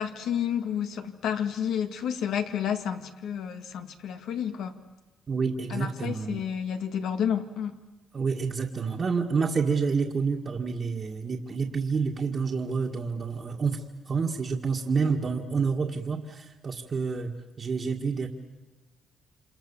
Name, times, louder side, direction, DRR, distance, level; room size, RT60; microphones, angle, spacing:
voice 1, 0.0-4.7 5.7-7.7, left 8 dB, 80° left, 7 dB, 2.0 m, -30 dB
voice 2, 5.3-6.4 8.1-17.3 17.6-18.3, right 5 dB, 40° right, -1 dB, 1.9 m, -28 dB
28.5 x 26.5 x 7.3 m, 1.2 s
cardioid pair, 90°, 0 cm